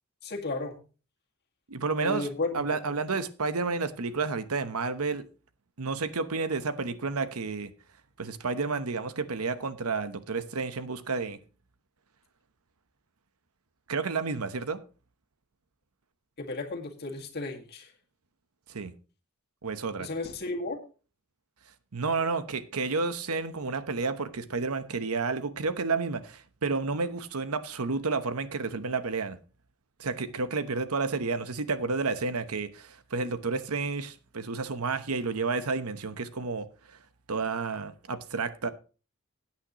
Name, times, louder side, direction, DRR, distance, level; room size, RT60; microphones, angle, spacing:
voice 1, 0.2-0.8 2.0-2.6 16.4-17.9 20.0-20.8, left 2 dB, 50° left, 1.9 m, -33 dB
voice 2, 1.7-2.3 2.5-5.2 5.8-7.7 8.2-11.4 13.9-14.8 18.7-18.9 19.6-20.1 21.9-29.4 30.0-37.0 37.3-38.7, right 4 dB, 75° right, 1.0 m, -31 dB
16.0 x 8.9 x 3.0 m
head